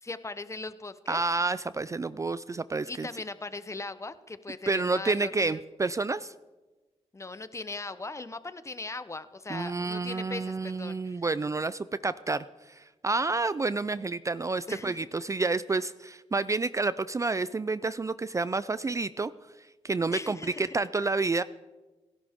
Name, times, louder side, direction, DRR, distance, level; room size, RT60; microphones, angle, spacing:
voice 1, 0.0-1.2 2.9-5.6 7.1-11.2 14.7-15.0 20.1-20.7, left 3 dB, 25° left, 13 dB, 0.9 m, -39 dB
voice 2, 1.1-3.1 4.7-6.3 9.5-19.3 19.8-21.4, right 3 dB, 25° right, 16 dB, 0.4 m, -29 dB
30.0 x 11.0 x 3.6 m, 1.2 s
cardioid pair, 75°, 12 cm